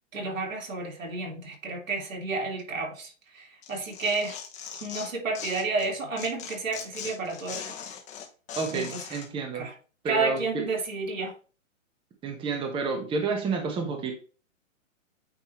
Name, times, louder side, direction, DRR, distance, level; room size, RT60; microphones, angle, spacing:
voice 1, 0.1-4.4 4.8-7.8 8.7-9.0 9.5-9.7 10.1-11.3, right 3 dB, 80° right, 2.8 m, -31 dB
Tearing, 3.6-5.9 6.2-9.3, left 8 dB, 20° left, 1.2 m, -40 dB
voice 2, 8.5-9.7 10.0-10.6 12.2-14.1, right 4 dB, 15° right, 1.1 m, -30 dB
9.1 x 3.5 x 3.0 m
hypercardioid pair, 140°, 39 cm